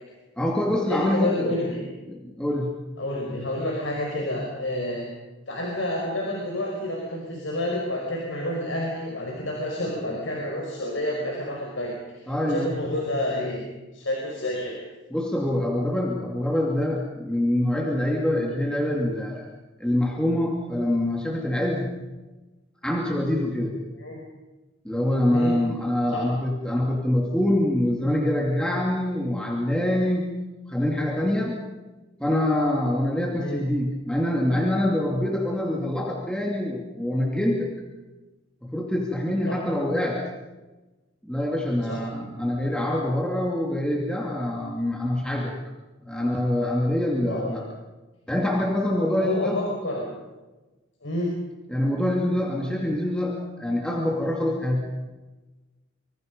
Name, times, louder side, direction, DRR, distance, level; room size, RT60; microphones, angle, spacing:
voice 1, 0.4-1.5 2.1-2.7 12.3-12.8 15.1-19.5 19.8-21.9 22.8-23.8 24.8-30.3 30.7-31.6 32.2-37.7 38.6-40.2 41.2-45.5 46.1-47.7 48.3-49.6 51.7-54.9, left 1 dB, 5° left, -1 dB, 2.7 m, -25 dB
voice 2, 0.9-1.8 3.0-5.1 5.5-13.6 13.9-14.8 24.0-24.2 25.3-25.6 26.1-26.3 33.4-33.6 39.4-39.6 41.8-42.0 47.3-47.5 49.2-50.1 51.0-51.4, left 1 dB, 75° left, -1 dB, 5.4 m, -29 dB
26.0 x 25.0 x 5.4 m, 1.1 s
head